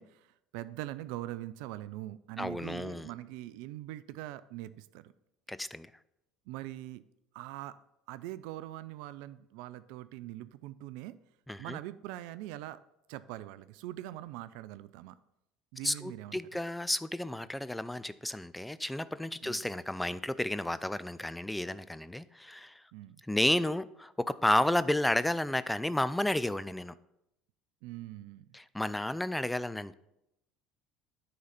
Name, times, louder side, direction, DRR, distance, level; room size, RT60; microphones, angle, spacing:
voice 1, 0.0-5.1 6.5-7.0 7.3-7.8 8.1-11.2 11.6-12.8 13.1-15.2 15.7-16.4 19.4-19.6 22.9-23.2 27.8-28.4, right 15 dB, 70° right, 16 dB, 0.3 m, -42 dB
voice 2, 2.4-3.1 5.5-5.9 11.5-11.8 15.8-22.8 23.3-26.9 28.5-29.9, left 1 dB, 5° left, 15 dB, 0.4 m, -32 dB
9.4 x 3.9 x 5.7 m, 0.84 s
hypercardioid pair, 70°, 0 cm